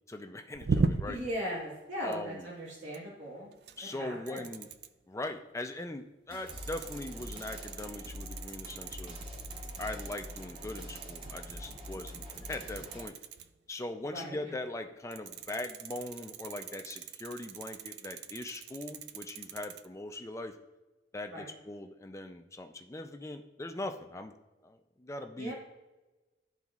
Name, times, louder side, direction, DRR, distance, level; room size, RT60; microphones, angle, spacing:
voice 1, 0.1-1.2 2.0-2.5 3.8-4.7 5.1-9.2 9.8-13.1 13.7-20.6 21.1-24.3 24.6-25.5, left 2 dB, 15° left, 6 dB, 0.4 m, -40 dB
sound 1, 0.5-1.3 2.0-2.3 2.9-3.0 3.5-4.0 4.3-4.9 6.5-13.5 15.1-19.9, right 4 dB, 60° right, 0.4 m, -38 dB
voice 2, 1.1-3.5 3.8-4.4 14.0-14.5 21.3-21.5 25.4-25.5, equal, 90° right, -7 dB, 1.9 m, -39 dB
sound 2, 6.3-13.1, left 1 dB, 30° right, 0.9 m, -45 dB
12.0 x 4.0 x 2.4 m, 1.1 s
head